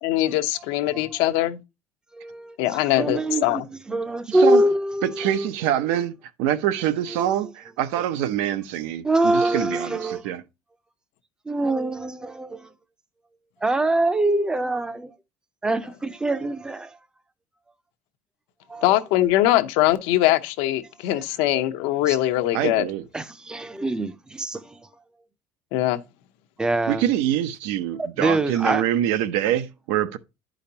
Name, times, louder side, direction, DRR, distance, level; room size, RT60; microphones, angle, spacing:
voice 1, 0.0-1.6 2.6-3.7 18.8-22.8 25.7-26.0, left 14 dB, 75° left, 0.8 m, -22 dB
voice 2, 2.1-2.6 2.9-5.4 9.0-10.2 11.5-12.7 13.6-15.1 15.6-17.0 18.7-18.9 22.1-22.2 23.1-24.8 26.6-27.0 28.2-28.8, right 1 dB, 10° right, 0.5 m, -24 dB
voice 3, 4.3-4.6 5.0-10.4 22.5-23.1 26.9-30.2, right 11 dB, 85° right, 0.7 m, -25 dB
11.0 x 5.0 x 2.8 m
cardioid pair, 170°, 9 cm